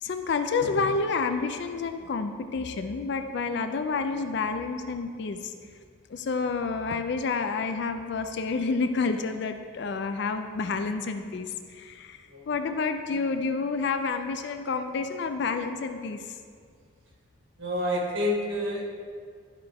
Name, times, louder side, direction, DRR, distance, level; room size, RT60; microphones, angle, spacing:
voice 1, 0.0-5.5 6.1-12.2 12.5-16.2, left 4 dB, 55° left, 8 dB, 0.4 m, -29 dB
voice 2, 17.6-18.8, left 1 dB, 75° right, -2 dB, 1.8 m, -28 dB
11.5 x 4.5 x 3.5 m, 2.1 s
head